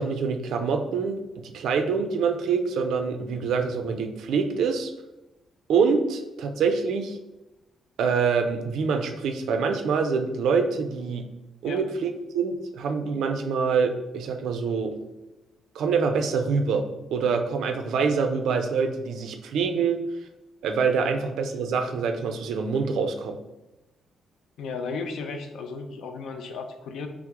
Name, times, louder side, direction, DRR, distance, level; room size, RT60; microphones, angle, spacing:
voice 1, 0.0-4.9 5.7-7.2 8.0-11.3 11.6-15.0 15.8-16.9 17.1-20.0 20.6-23.4, right 5 dB, 75° right, 6 dB, 0.4 m, -25 dB
voice 2, 24.6-27.1, left 4 dB, 70° left, 6 dB, 0.5 m, -34 dB
5.8 x 2.0 x 3.6 m, 0.98 s
cardioid pair, 170°, 0 cm